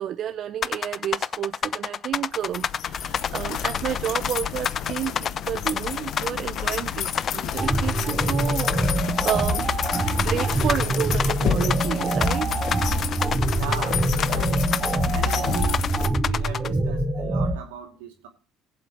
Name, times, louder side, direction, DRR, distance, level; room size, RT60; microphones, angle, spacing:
voice 1, 0.0-8.9 9.2-9.7 10.2-12.5, right 10 dB, 55° right, 0.7 m, -30 dB
sound 1, 0.6-16.7, left 7 dB, 45° left, 0.4 m, -28 dB
sound 2, 2.4-16.1, left 9 dB, 60° left, 1.1 m, -31 dB
sound 3, 7.6-17.5, right 2 dB, 25° right, 3.7 m, -25 dB
voice 2, 13.4-14.7 15.1-15.8 16.2-18.3, right 8 dB, 85° right, 2.6 m, -37 dB
19.0 x 7.7 x 3.0 m
hypercardioid pair, 65°, 0 cm